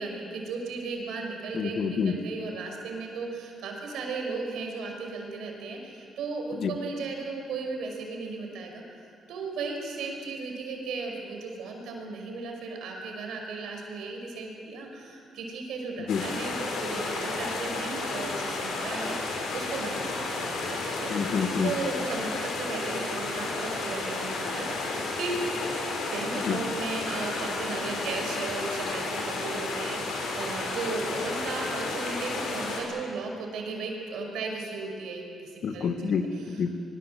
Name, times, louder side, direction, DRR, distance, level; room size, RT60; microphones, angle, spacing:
voice 1, 0.0-21.1 21.6-25.4 26.1-36.1, right 4 dB, 80° right, 2 dB, 5.6 m, -36 dB
voice 2, 1.5-2.2 6.5-6.7 16.1-16.2 21.1-21.7 26.4-26.6 35.6-36.7, left 6 dB, 60° left, 7 dB, 1.9 m, -28 dB
sound 1, 16.1-32.8, left 3 dB, 80° left, 5.7 m, -32 dB
23.0 x 22.5 x 7.8 m, 2.6 s
cardioid pair, 90°, 0 cm